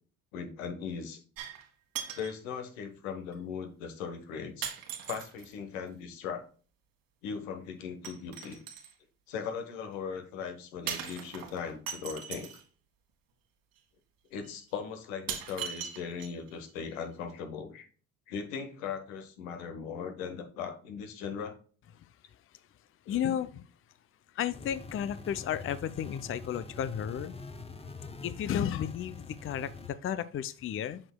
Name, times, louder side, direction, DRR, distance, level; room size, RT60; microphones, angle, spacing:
voice 1, 0.3-1.2 2.2-4.7 5.1-6.5 7.2-8.6 9.3-12.5 14.3-17.9 18.3-21.5 23.0-23.3 24.6-24.7, left 6 dB, 80° left, 6 dB, 1.3 m, -39 dB
sound 1, 1.4-1.7 1.9-2.4 3.3-3.4 4.6-5.5 8.0-8.9 10.9-12.6 13.8-13.9 14.4-14.5 15.3-16.5 16.9-17.0, right 8 dB, 60° right, 1.8 m, -39 dB
voice 2, 23.1-23.7 24.4-27.3 28.2-31.0, left 9 dB, 35° left, 14 dB, 0.5 m, -33 dB
sound 2, 24.5-29.9, left 4 dB, 15° left, 0.9 m, -45 dB
7.6 x 6.1 x 2.2 m, 0.40 s
hypercardioid pair, 60°, 38 cm